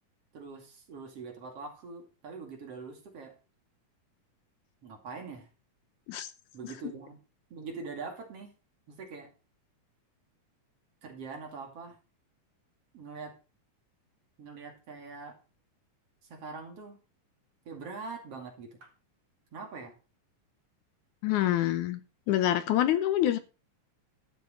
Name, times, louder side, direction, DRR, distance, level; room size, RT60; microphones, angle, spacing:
voice 1, 0.3-3.3 4.8-5.5 6.5-7.2 7.5-8.5 8.9-9.3 11.0-12.0 12.9-13.3 14.4-15.4 16.3-17.0 17.7-18.9 19.5-19.9, right 4 dB, 50° right, 2 dB, 3.3 m, -43 dB
voice 2, 21.2-22.0 22.3-23.4, left 12 dB, 75° left, 12 dB, 2.1 m, -26 dB
12.5 x 7.3 x 5.1 m, 0.32 s
omnidirectional pair, 3.7 m